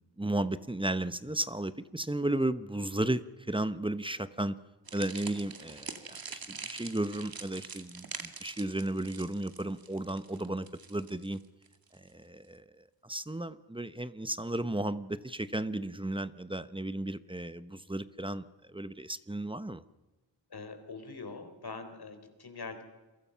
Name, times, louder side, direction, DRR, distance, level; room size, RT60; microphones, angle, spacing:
voice 1, 0.0-4.5 4.9-11.4 11.9-19.8, right 1 dB, 10° right, 13 dB, 0.9 m, -34 dB
sound 1, 4.9-12.1, right 5 dB, 50° right, 2.2 m, -44 dB
voice 2, 20.5-22.8, left 4 dB, 55° left, 7 dB, 4.0 m, -43 dB
29.0 x 23.5 x 5.8 m, 1.2 s
wide cardioid pair, 100°, 44 cm